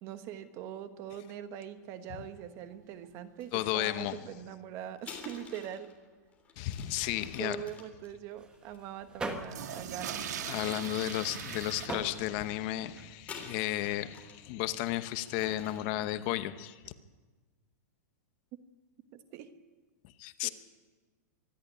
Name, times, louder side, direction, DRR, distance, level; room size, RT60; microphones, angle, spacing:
voice 1, 0.0-5.9 7.2-10.3 19.1-19.5 20.4-20.5, right 10 dB, 30° right, 11 dB, 1.2 m, -42 dB
sound 1, 2.4-2.5 2.7-2.8 3.0-3.1 3.7-3.8 9.4-11.9, right 8 dB, 70° right, 2.1 m, -39 dB
sound 2, 3.4-3.6 5.0-9.7 10.3-10.9 11.3-11.4 13.2-14.4 14.9-16.0, left 5 dB, 15° left, 3.2 m, -49 dB
voice 2, 3.5-4.2 6.6-7.6 10.5-16.9 20.0-20.5, left 14 dB, 35° left, 12 dB, 0.9 m, -33 dB
sound 3, 8.4-13.2, right 2 dB, 10° right, 1.5 m, -43 dB
25.0 x 11.0 x 9.9 m, 1.3 s
supercardioid pair, 165°, 9 cm